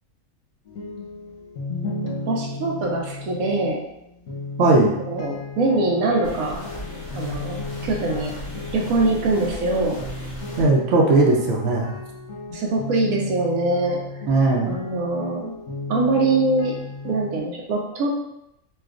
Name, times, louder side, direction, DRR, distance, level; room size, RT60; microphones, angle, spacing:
sound 1, 0.7-17.4, left 2 dB, 80° left, 1.2 m, -35 dB
voice 1, 2.3-3.8 4.6-4.8 5.1-6.6 7.1-8.3 8.7-10.0 12.5-14.0 14.6-15.5 15.9-16.7 17.0-18.1, right 2 dB, 90° right, -1 dB, 1.1 m, -23 dB
voice 2, 4.6-4.9 10.6-12.0 14.3-14.8, right 2 dB, 65° right, -1 dB, 0.9 m, -18 dB
sound 2, 6.2-10.6, left 1 dB, 60° left, 1.3 m, -36 dB
4.2 x 2.3 x 2.4 m, 0.81 s
omnidirectional pair, 1.4 m